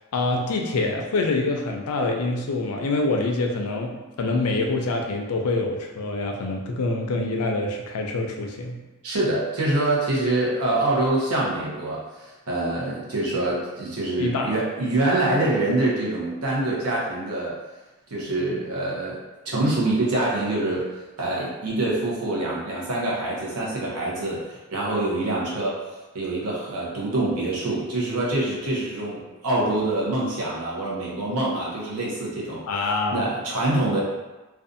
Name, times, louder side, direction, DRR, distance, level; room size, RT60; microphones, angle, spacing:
voice 1, 0.0-8.8 14.2-14.5 32.7-33.3, left 2 dB, 85° left, 2 dB, 0.4 m, -25 dB
voice 2, 9.0-17.6 18.1-20.9 21.2-25.8 26.1-32.6 33.1-34.0, right 2 dB, 85° right, -4 dB, 0.7 m, -25 dB
2.5 x 2.3 x 2.5 m, 1.1 s
head